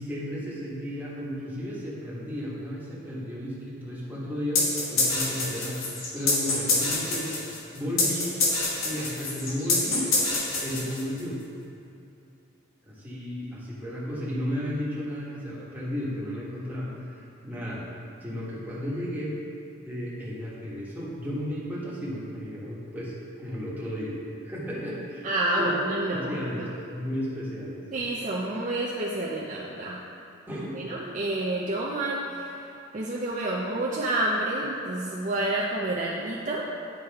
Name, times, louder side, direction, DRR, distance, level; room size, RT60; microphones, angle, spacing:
voice 1, 0.0-4.6 4.9-5.8 6.1-7.3 7.7-8.3 8.8-10.1 10.6-11.4 12.8-17.9 18.2-19.3 19.8-24.1 24.4-25.3 25.6-25.8 26.1-26.6 26.9-27.8 30.5-30.9, equal, 10° right, -8 dB, 1.4 m, -33 dB
sound 1, 4.5-11.2, left 3 dB, 75° left, 1.2 m, -26 dB
voice 2, 25.2-26.7 27.9-30.0 30.5-36.7, right 1 dB, 35° right, -4 dB, 0.5 m, -29 dB
9.4 x 4.8 x 3.5 m, 2.7 s
head